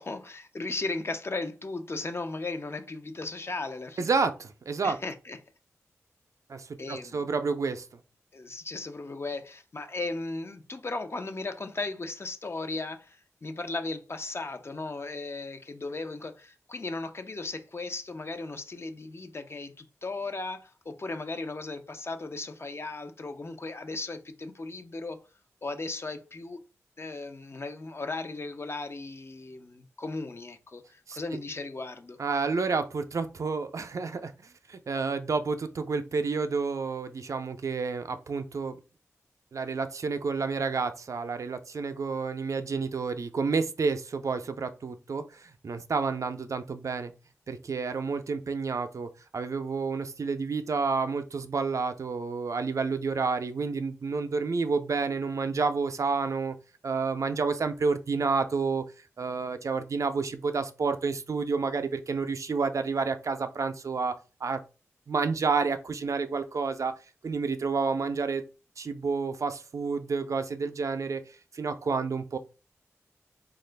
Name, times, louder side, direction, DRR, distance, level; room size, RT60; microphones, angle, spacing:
voice 1, 0.0-4.1 4.8-5.4 6.8-7.3 8.3-25.2 25.6-26.6 27.0-32.2, left 3 dB, 45° left, 0.6 m, -36 dB
voice 2, 4.0-5.0 6.5-7.9 31.1-31.2 32.2-38.8 39.5-47.1 47.5-56.6 56.8-58.8 59.2-64.2 64.4-64.6 65.1-67.0 67.2-68.4 68.8-71.2 71.5-72.4, right 4 dB, 65° right, 0.5 m, -30 dB
3.7 x 2.4 x 3.3 m
cardioid pair, 40°, 6 cm